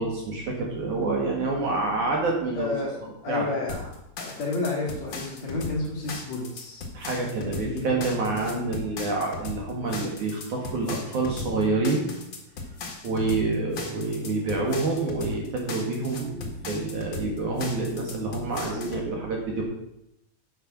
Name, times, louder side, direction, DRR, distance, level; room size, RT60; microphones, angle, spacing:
voice 1, 0.0-2.7 3.3-3.4 6.9-12.0 13.0-19.6, right 3 dB, 55° right, -1 dB, 2.6 m, -27 dB
voice 2, 2.5-3.0 3.2-3.9 4.2-6.8 7.4-8.8, left 3 dB, 50° left, -4 dB, 2.7 m, -31 dB
sound 1, 3.7-19.1, left 3 dB, 85° left, 1.0 m, -37 dB
9.0 x 6.8 x 5.9 m, 0.84 s
omnidirectional pair, 4.7 m